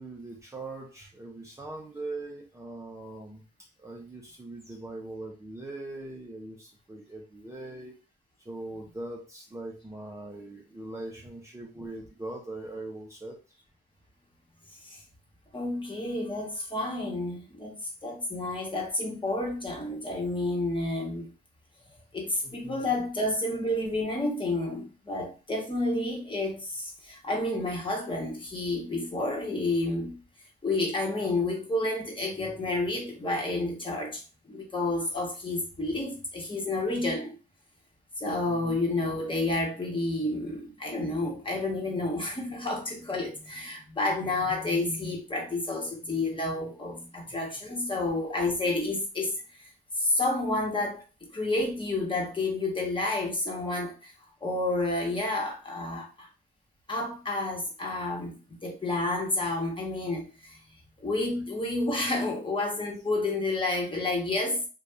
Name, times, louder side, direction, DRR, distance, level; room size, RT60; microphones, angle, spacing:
voice 1, 0.0-7.9 8.4-13.4 22.4-22.9 38.5-38.8 44.4-44.5 47.3-47.4, right 2 dB, 15° right, 0.7 m, -41 dB
voice 2, 15.5-17.7 18.0-21.3 22.1-30.2 30.6-37.3 38.2-49.7 50.0-51.0 51.3-54.1 54.4-56.3 56.9-60.6 61.0-64.7, left 2 dB, 25° left, 1.3 m, -30 dB
2.7 x 2.4 x 3.4 m
cardioid pair, 90°, 20 cm